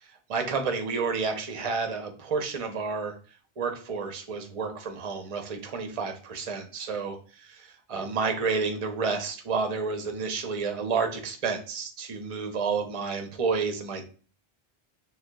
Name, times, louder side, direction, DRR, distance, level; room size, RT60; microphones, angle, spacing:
voice 1, 0.0-3.1 3.6-14.1, right 5 dB, 45° right, 6 dB, 0.5 m, -30 dB
6.3 x 2.2 x 2.2 m, 0.39 s
omnidirectional pair, 1.0 m